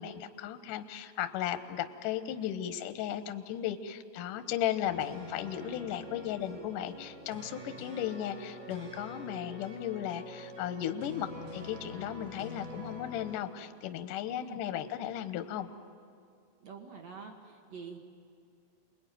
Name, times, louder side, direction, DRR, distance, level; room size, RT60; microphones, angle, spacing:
voice 1, 0.0-15.7, left 11 dB, 75° left, 9 dB, 2.0 m, -36 dB
sound 1, 4.8-13.4, left 1 dB, 80° right, 7.5 m, -46 dB
voice 2, 14.3-14.6 16.6-18.0, right 5 dB, 50° right, 3 dB, 2.1 m, -46 dB
29.0 x 21.5 x 9.3 m, 2.3 s
omnidirectional pair, 5.1 m